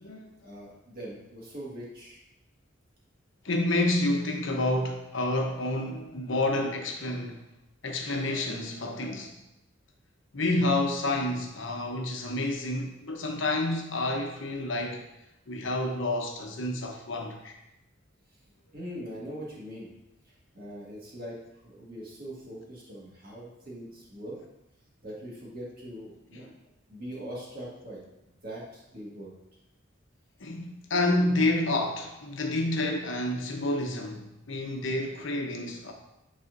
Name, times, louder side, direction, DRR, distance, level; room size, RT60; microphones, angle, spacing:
voice 1, 0.4-2.2 18.7-19.9 20.5-21.4 21.6-24.4 25.0-26.5 26.9-28.0 28.4-28.6 28.9-29.3, equal, 45° right, -5 dB, 1.7 m, -41 dB
voice 2, 3.4-7.4 7.8-9.4 10.3-15.0 15.5-17.5 26.3-26.5 30.4-35.9, left 2 dB, 70° left, 2 dB, 0.9 m, -29 dB
8.9 x 4.2 x 2.6 m, 0.89 s
head